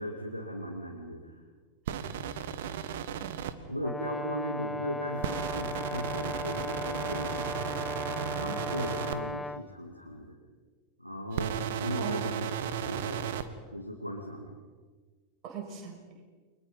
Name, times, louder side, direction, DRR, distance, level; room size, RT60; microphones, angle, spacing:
voice 1, 0.0-1.4 3.7-7.5 8.3-10.4 11.0-13.2 13.7-14.6, equal, 90° right, 1 dB, 2.6 m, -37 dB
voice 2, 1.9-2.3 3.2-3.6 8.1-8.7 12.0-12.3 15.4-16.0, right 7 dB, 35° right, 2 dB, 6.5 m, -41 dB
sound 1, 1.9-3.5 5.2-9.2 11.3-13.4, right 9 dB, 55° right, 1.6 m, -34 dB
Brass instrument, 3.8-9.6, left 2 dB, 5° left, 0.8 m, -37 dB
30.0 x 24.5 x 5.5 m, 1.4 s
figure-of-eight pair, 90°, 0 cm